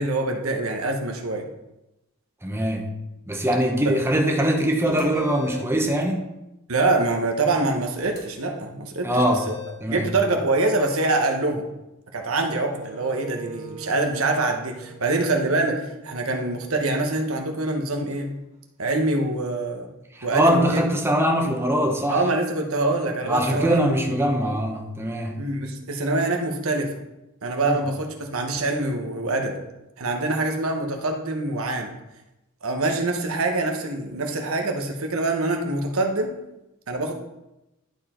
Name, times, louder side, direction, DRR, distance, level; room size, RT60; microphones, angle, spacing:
voice 1, 0.0-1.5 3.8-4.0 6.7-9.5 9.9-11.7 12.1-18.3 18.8-19.9 20.2-20.8 22.1-23.8 25.4-26.9 27.4-29.6 30.0-31.9 32.6-36.3 36.9-37.1, right 2 dB, 85° right, 3 dB, 1.2 m, -25 dB
voice 2, 2.4-2.9 3.3-6.3 9.0-9.5 9.8-10.1 20.1-22.2 23.3-25.4 27.6-27.8, equal, 10° right, 1 dB, 1.0 m, -22 dB
sound 1, 4.8-5.7 8.0-8.2 9.2-9.8, left 7 dB, 30° left, 2.5 m, -38 dB
Wind instrument woodwind instrument, 12.4-18.4, right 3 dB, 35° right, 1.2 m, -44 dB
11.0 x 4.6 x 4.4 m, 0.93 s
head